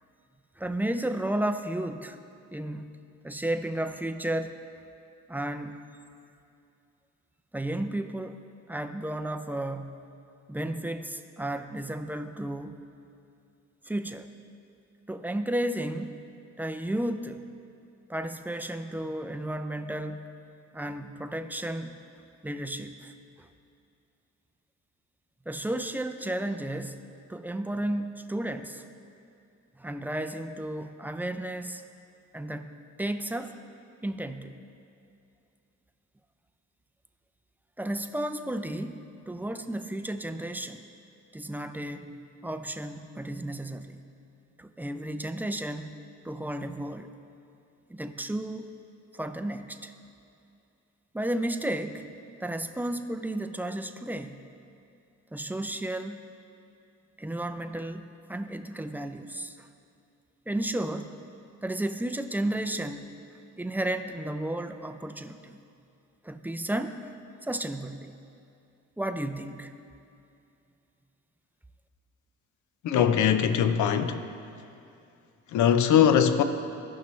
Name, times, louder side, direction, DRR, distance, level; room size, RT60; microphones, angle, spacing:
voice 1, 0.6-2.2 2.5-3.0 3.2-4.6 5.3-5.8 7.5-8.4 8.7-10.1 10.5-12.8 13.9-14.3 15.1-16.2 16.6-17.4 18.1-20.4 20.7-22.0 22.4-23.1 23.4-23.5 25.5-28.8 29.8-31.8 32.3-32.7 33.0-33.6 34.0-34.6 37.8-40.9 41.3-44.0 44.6-46.0 46.2-47.1 47.9-48.7 49.1-49.9 51.1-52.1 52.4-54.4 55.3-56.3 57.2-59.7 60.5-61.2 61.6-63.1 63.6-65.6 66.2-67.1 67.4-68.1 69.0-69.7, right 1 dB, 5° right, 0.4 m, -33 dB
voice 2, 72.8-74.2 75.5-76.4, left 8 dB, 75° left, 0.6 m, -21 dB
16.0 x 5.6 x 3.1 m
cardioid pair, 90°, 30 cm